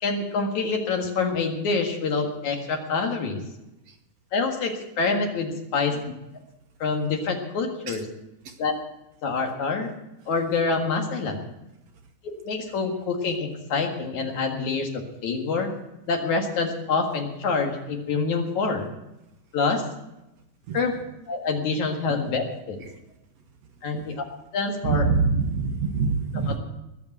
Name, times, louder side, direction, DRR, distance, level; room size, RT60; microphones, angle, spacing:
voice 1, 0.0-3.4 4.3-6.0 6.8-8.1 8.6-8.7 9.2-9.9 10.3-11.4 12.4-15.7 16.1-18.9 19.5-19.8 20.7-20.9 21.3-22.8 23.8-24.1 24.5-25.1 26.5-26.6, left 4 dB, 65° left, 3 dB, 3.2 m, -26 dB
voice 2, 24.8-26.6, right 4 dB, 65° right, 5 dB, 2.1 m, -24 dB
20.5 x 7.0 x 7.9 m, 0.92 s
omnidirectional pair, 3.6 m